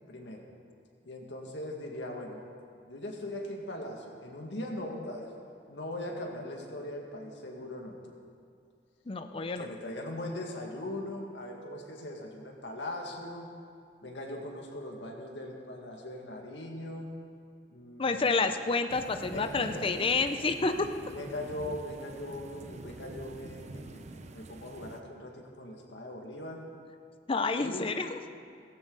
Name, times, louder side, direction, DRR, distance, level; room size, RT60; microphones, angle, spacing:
voice 1, 0.1-0.5 1.0-2.4 2.9-5.3 5.7-8.0 9.6-13.5 14.0-17.1 17.7-18.6 19.3-20.4 21.1-26.6 27.5-27.9, left 1 dB, 85° left, 1 dB, 2.0 m, -40 dB
voice 2, 9.1-9.7 18.0-20.9 27.3-28.2, left 4 dB, 30° left, 8 dB, 0.5 m, -29 dB
sound 1, 18.9-25.0, right 2 dB, 40° right, 0.7 m, -46 dB
17.0 x 15.0 x 4.0 m, 2.3 s
head